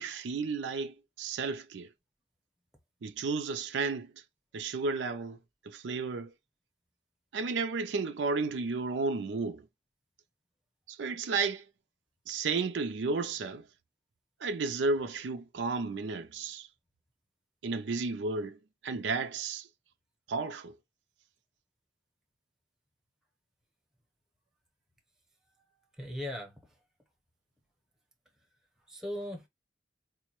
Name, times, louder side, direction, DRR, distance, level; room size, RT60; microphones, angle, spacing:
voice 1, 0.0-1.9 3.0-4.2 4.5-5.4 5.6-6.3 7.3-9.7 10.9-11.7 12.3-13.7 14.4-16.7 17.6-19.7 20.3-20.8, right 4 dB, 90° right, 0.4 m, -33 dB
voice 2, 26.0-26.6 28.9-29.5, left 1 dB, 5° right, 0.7 m, -38 dB
4.4 x 2.1 x 2.9 m
head